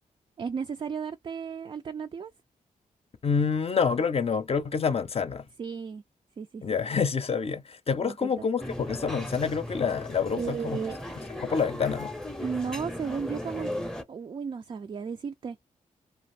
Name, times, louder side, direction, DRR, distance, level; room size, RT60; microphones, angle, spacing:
voice 1, 0.4-2.3 5.6-6.0 6.4-6.6 8.0-8.3 10.4-11.3 12.4-13.7 14.1-15.6, right 6 dB, 40° right, 0.3 m, -34 dB
voice 2, 3.2-5.5 6.6-10.8 11.4-12.1, left 6 dB, 45° left, 0.6 m, -27 dB
sound 1, 8.6-14.0, left 1 dB, 5° left, 0.6 m, -37 dB
2.5 x 2.4 x 3.2 m
cardioid pair, 65°, 14 cm